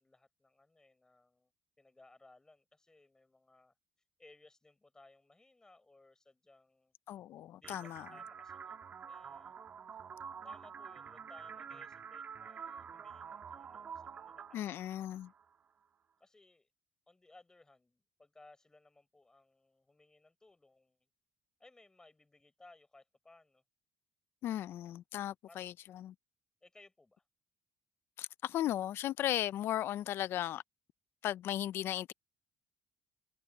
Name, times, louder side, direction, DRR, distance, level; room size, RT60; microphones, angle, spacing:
voice 1, 0.0-1.5 1.8-3.7 4.2-6.9 7.6-9.5 10.4-14.9 16.2-16.7 17.1-21.1 21.6-23.6 25.5-25.6 26.6-27.2, left 2 dB, 15° left, 5.3 m, -62 dB
voice 2, 7.1-8.1 14.5-15.3 24.4-26.1 28.2-30.6 31.2-32.1, left 12 dB, 65° left, 0.5 m, -36 dB
sound 1, 7.6-15.6, right 7 dB, 40° right, 1.9 m, -48 dB
cardioid pair, 110°, 4 cm